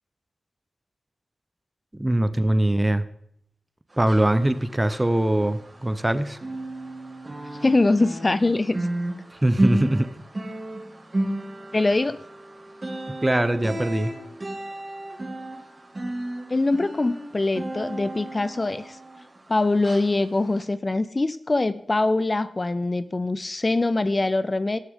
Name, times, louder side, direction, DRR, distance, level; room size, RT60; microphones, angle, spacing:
voice 1, 2.0-3.0 4.0-6.4 9.3-10.1 13.1-14.1, right 1 dB, 20° right, 13 dB, 0.8 m, -22 dB
sound 1, 3.9-6.1 6.3-19.5 19.8-20.1 20.6-20.7, right 1 dB, 35° right, 2.5 m, -32 dB
voice 2, 7.6-8.9 11.7-12.2 16.5-19.0 19.5-24.8, left 2 dB, 35° left, 14 dB, 0.5 m, -23 dB
18.5 x 6.7 x 3.7 m, 0.68 s
cardioid pair, 55°, 0 cm